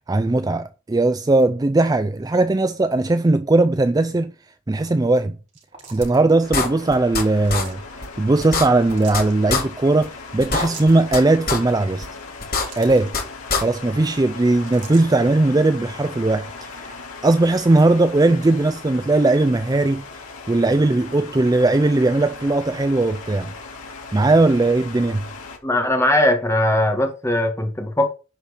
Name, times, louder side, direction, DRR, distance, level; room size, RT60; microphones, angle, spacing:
voice 1, 0.1-4.3 4.7-5.4 5.9-7.8 8.2-12.1 12.8-13.1 13.6-16.9 17.2-20.0 20.5-23.5 24.1-25.2, right 2 dB, 15° right, 0.3 m, -18 dB
sound 1, 5.5-6.3 7.4-7.8 8.8-9.3 10.6-11.0 12.2-13.1 14.6-15.1, right 5 dB, 35° right, 3.4 m, -41 dB
sound 2, 6.0-6.1 6.5-7.2 7.5-7.6 8.0-8.1 8.4-9.2 9.5-9.6 10.0-10.1 10.4-11.2 11.5-11.6 12.0-12.1 12.4-13.2 13.5-13.6, left 4 dB, 45° left, 3.5 m, -22 dB
sound 3, 6.4-25.6, left 4 dB, 90° left, 3.5 m, -38 dB
voice 2, 25.6-28.1, left 1 dB, 15° left, 1.7 m, -19 dB
10.5 x 4.5 x 6.6 m
head